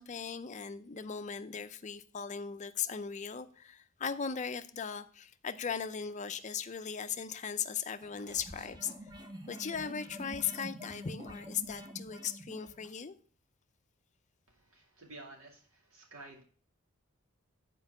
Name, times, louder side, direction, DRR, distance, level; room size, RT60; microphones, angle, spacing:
voice 1, 0.0-9.1 9.5-13.2, left 7 dB, 35° left, 0.5 m, -38 dB
sound 1, 8.0-13.0, equal, 20° right, 0.9 m, -47 dB
voice 2, 14.5-16.4, right 2 dB, 75° right, 2.3 m, -52 dB
7.8 x 4.5 x 5.7 m
head